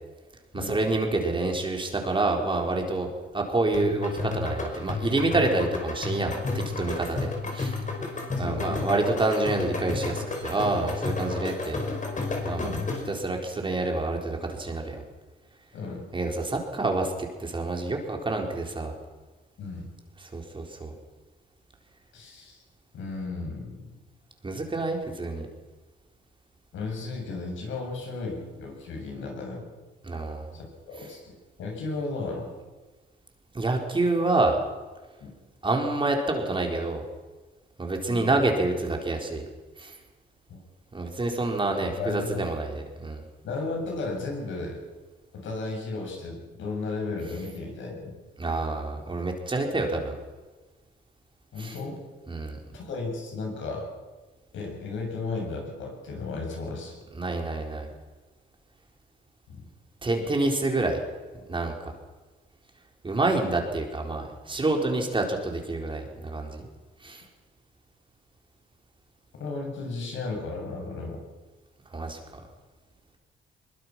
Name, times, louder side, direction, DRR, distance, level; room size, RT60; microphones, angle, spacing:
voice 1, 0.5-7.8 8.4-11.8 12.4-12.8 13.1-15.0 16.1-18.9 20.2-20.9 24.4-25.5 30.0-30.5 33.5-34.6 35.6-37.0 37.8-39.5 39.8-39.9 40.9-43.2 48.4-50.2 51.6-51.8 52.3-52.6 57.1-57.9 60.0-61.0 61.5-61.9 63.0-66.7 67.0-67.2 71.9-72.4, right 2 dB, 25° right, 2 dB, 4.1 m, -27 dB
sound 1, 3.7-13.2, left 3 dB, 40° left, 5.2 m, -32 dB
voice 2, 8.4-8.9 12.6-12.9 15.7-16.0 19.6-19.9 22.1-22.6 22.9-23.9 26.7-29.7 30.5-32.5 35.2-35.3 38.0-38.3 40.5-40.7 42.0-42.4 43.4-44.8 45.3-48.2 51.5-52.0 52.7-53.9 54.5-56.9 59.5-59.6 69.4-71.2, left 3 dB, 75° left, 0 dB, 7.5 m, -34 dB
22.0 x 21.5 x 6.1 m, 1.3 s
cardioid pair, 90°, 20 cm